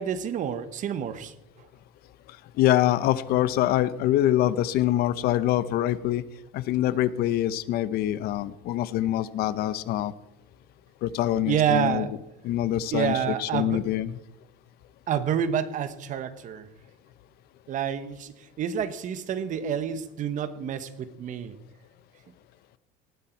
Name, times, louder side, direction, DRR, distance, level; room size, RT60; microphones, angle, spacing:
voice 1, 0.0-1.3 11.5-12.1 12.9-13.8 15.1-16.7 17.7-21.5, right 9 dB, 45° right, 13 dB, 1.3 m, -28 dB
voice 2, 2.6-6.2 6.5-10.1 11.0-12.1 12.4-14.2, left 13 dB, 60° left, 16 dB, 0.9 m, -25 dB
19.0 x 13.0 x 4.6 m, 0.91 s
cardioid pair, 130°, 18 cm